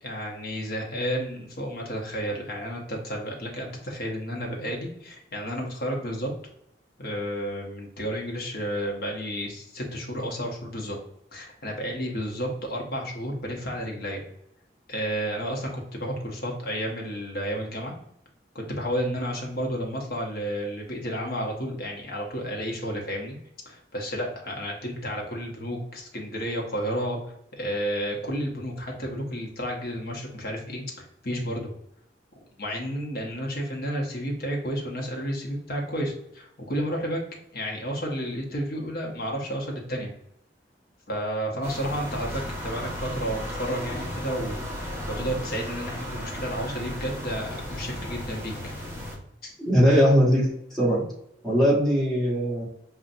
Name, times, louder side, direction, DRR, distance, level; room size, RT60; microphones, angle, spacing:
voice 1, 0.0-6.3 7.0-11.0 11.3-14.2 14.9-17.9 18.5-23.4 23.6-27.2 27.5-31.7 32.3-37.2 37.5-40.1 41.1-48.7 49.4-49.5, equal, 55° left, 0 dB, 1.0 m, -31 dB
sound 1, 41.6-49.2, equal, 15° right, 0.9 m, -35 dB
voice 2, 49.6-51.0 51.4-52.6, equal, ahead, -7 dB, 1.5 m, -20 dB
5.5 x 2.4 x 2.5 m, 0.75 s
head